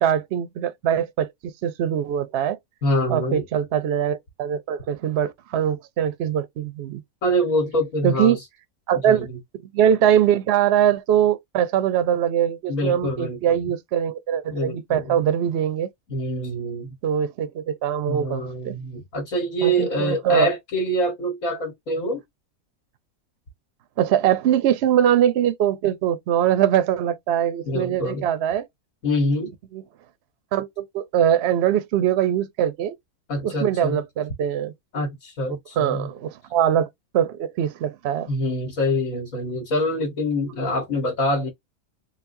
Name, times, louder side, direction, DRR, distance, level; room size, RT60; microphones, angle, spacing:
voice 1, 0.0-2.6 3.1-7.0 8.0-8.4 8.9-9.3 9.7-15.9 17.0-18.8 19.6-20.5 24.0-28.6 29.7-29.8 30.5-33.0 33.4-34.7 35.8-36.9 37.1-38.3, right 10 dB, 60° right, 0.7 m, -22 dB
voice 2, 2.8-3.4 7.2-8.4 9.0-9.4 12.7-13.6 14.5-15.2 16.1-16.9 18.1-22.2 27.6-28.3 29.0-29.5 33.3-34.0 34.9-36.1 38.3-41.5, equal, 75° left, 1.9 m, -25 dB
4.0 x 2.3 x 2.6 m
omnidirectional pair, 1.4 m